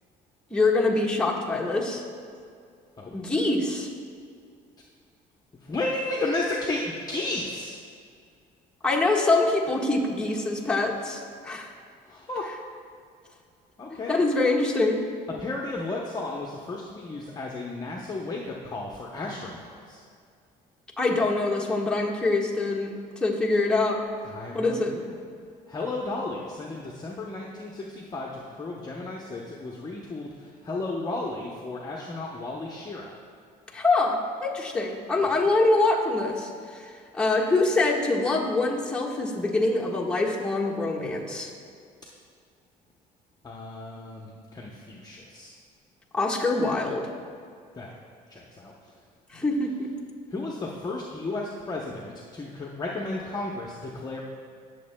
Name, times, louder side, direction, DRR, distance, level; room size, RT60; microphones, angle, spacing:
voice 1, 0.5-2.0 3.1-3.9 8.8-11.7 13.9-15.0 21.0-24.0 24.5-25.0 33.7-41.5 46.1-47.1 49.3-49.9, left 2 dB, 5° left, -3 dB, 1.4 m, -25 dB
voice 2, 5.6-7.8 12.1-12.5 13.8-14.2 15.4-20.0 24.2-25.1 25.7-33.1 43.4-45.5 47.7-47.9 48.3-48.7 50.3-54.2, left 2 dB, 25° left, -2 dB, 0.8 m, -33 dB
19.0 x 7.0 x 2.2 m, 2.3 s
cardioid pair, 110°, 17 cm